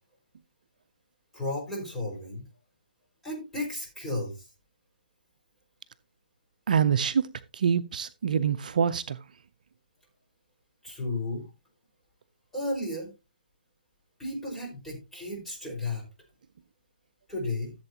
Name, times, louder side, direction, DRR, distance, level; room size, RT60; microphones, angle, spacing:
voice 1, 1.3-2.4 3.2-4.5 10.8-11.5 12.5-13.1 14.2-16.0 17.3-17.7, left 2 dB, 5° left, 5.2 m, -33 dB
voice 2, 6.7-7.3 7.5-9.2, right 7 dB, 60° right, 0.6 m, -25 dB
15.0 x 7.9 x 2.9 m
hypercardioid pair, 155°, 5 cm